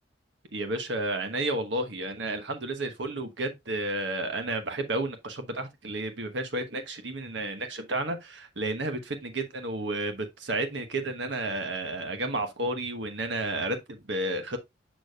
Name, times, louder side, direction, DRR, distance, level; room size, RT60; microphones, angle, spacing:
voice 1, 0.5-14.6, right 2 dB, 70° right, 1.1 m, -31 dB
6.6 x 6.1 x 2.3 m
head